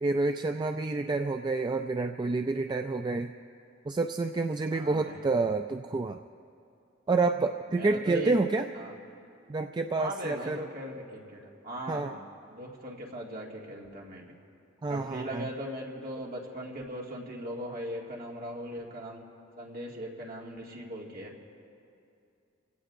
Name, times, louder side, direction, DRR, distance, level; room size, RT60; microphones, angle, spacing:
voice 1, 0.0-3.3 3.9-6.2 7.1-8.7 9.5-10.6 11.9-12.2 14.8-15.5, right 3 dB, 20° right, 6 dB, 0.3 m, -28 dB
voice 2, 4.7-5.2 7.7-8.4 8.7-8.9 10.0-11.4 11.6-12.2 12.5-14.3 14.9-19.2 19.6-21.3, right 1 dB, 50° right, -2 dB, 2.1 m, -39 dB
29.0 x 16.5 x 2.5 m, 2.6 s
head